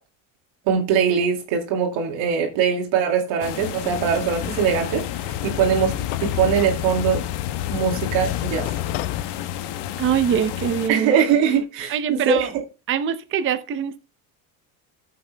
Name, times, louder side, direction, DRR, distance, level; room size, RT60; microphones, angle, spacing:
voice 1, 0.7-7.2 7.7-8.7 10.9-12.5, right 7 dB, 70° right, 2.3 m, -22 dB
sound 1, 3.4-10.9, left 11 dB, 60° left, 1.0 m, -31 dB
sound 2, 4.3-9.2, left 14 dB, 75° left, 0.7 m, -30 dB
voice 2, 10.0-11.2 11.9-12.5 12.9-14.0, right 8 dB, 25° right, 0.6 m, -23 dB
14.0 x 7.6 x 2.2 m
supercardioid pair, 120°, 46 cm